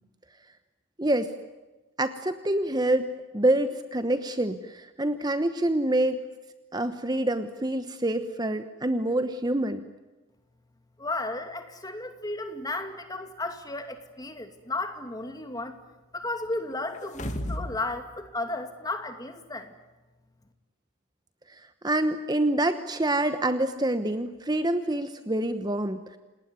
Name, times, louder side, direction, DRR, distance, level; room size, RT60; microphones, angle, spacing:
voice 1, 1.0-1.3 2.0-6.2 6.7-9.8 21.5-26.2, right 1 dB, 20° right, 10 dB, 1.0 m, -26 dB
voice 2, 11.0-15.8 16.1-19.7, left 2 dB, 20° left, 8 dB, 2.5 m, -34 dB
sound 1, 16.9-17.8 18.2-18.3, left 1 dB, 35° left, 2.4 m, -33 dB
28.5 x 19.5 x 9.5 m, 1.2 s
head